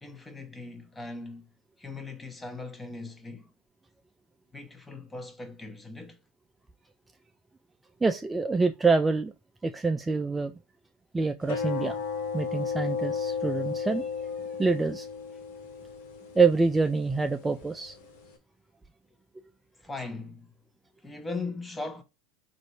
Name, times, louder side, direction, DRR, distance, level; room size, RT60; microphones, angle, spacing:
voice 1, 0.0-3.5 4.5-6.2 19.8-20.5 21.0-22.0, left 3 dB, 15° left, 0.8 m, -39 dB
voice 2, 8.0-9.3 9.6-10.5 11.1-12.0 12.3-14.3 14.6-15.1 16.4-18.0, right 4 dB, 15° right, 0.4 m, -26 dB
sound 1, 11.4-18.4, left 5 dB, 75° left, 1.2 m, -35 dB
4.0 x 2.6 x 4.7 m
hypercardioid pair, 100°, 0 cm